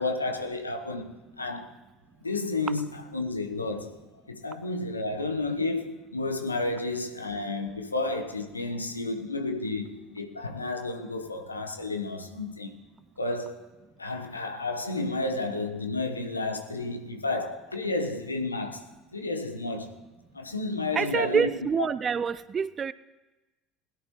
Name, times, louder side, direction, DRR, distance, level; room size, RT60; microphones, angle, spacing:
voice 1, 0.0-1.7 2.2-4.0 4.3-12.8 13.2-13.7 14.0-18.9 19.1-20.0 20.3-21.5, left 2 dB, 85° left, 1.1 m, -31 dB
voice 2, 20.9-22.9, right 6 dB, 35° right, 0.5 m, -27 dB
21.0 x 11.5 x 3.1 m
figure-of-eight pair, 65°, 0 cm